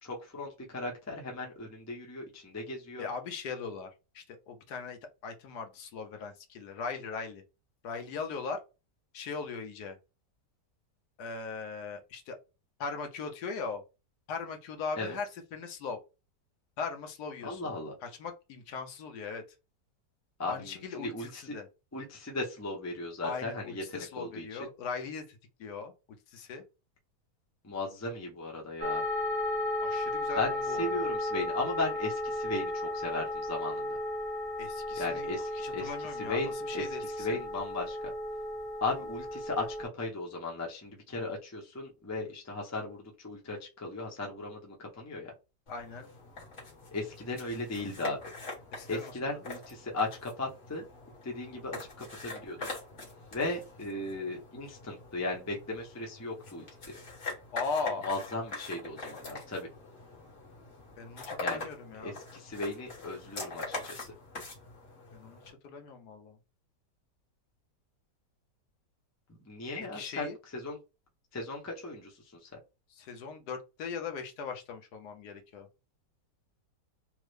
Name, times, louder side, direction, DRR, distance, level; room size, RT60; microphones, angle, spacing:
voice 1, 0.0-3.1 15.0-15.2 17.4-17.9 20.4-21.6 21.9-24.6 27.6-29.0 30.4-30.5 30.8-33.9 35.0-35.9 36.2-36.8 37.2-38.1 38.8-45.3 46.9-48.2 48.9-50.8 51.2-52.7 53.3-57.0 58.0-59.7 61.4-61.7 62.0-64.1 69.5-70.3 70.5-70.8 71.3-72.1 72.4-72.5, left 2 dB, 25° left, -1 dB, 0.3 m, -36 dB
voice 2, 3.0-3.9 4.1-7.4 7.8-8.6 9.1-10.0 11.2-12.4 12.8-13.8 14.3-16.0 16.8-17.8 18.0-19.4 20.5-21.7 23.2-26.6 29.8-31.0 34.6-37.4 45.7-46.1 48.7-49.4 57.5-58.1 61.0-62.2 65.1-66.4 69.9-70.4 72.9-75.7, left 5 dB, 75° left, 5 dB, 1.2 m, -39 dB
sound 1, 28.8-39.8, left 1 dB, 10° left, 0.8 m, -34 dB
sound 2, 45.7-65.5, left 3 dB, 45° left, 1.5 m, -44 dB
3.5 x 2.1 x 3.2 m, 0.28 s
omnidirectional pair, 1.8 m